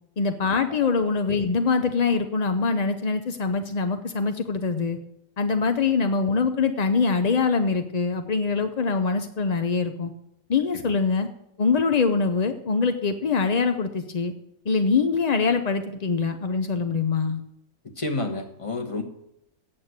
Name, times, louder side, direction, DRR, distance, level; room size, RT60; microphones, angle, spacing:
voice 1, 0.2-5.0 5.4-10.1 10.5-11.3 11.6-14.3 14.7-17.4, left 4 dB, 55° left, 7 dB, 0.4 m, -23 dB
voice 2, 18.0-19.0, left 2 dB, 25° left, 4 dB, 1.2 m, -30 dB
8.8 x 7.1 x 8.0 m, 0.81 s
omnidirectional pair, 1.6 m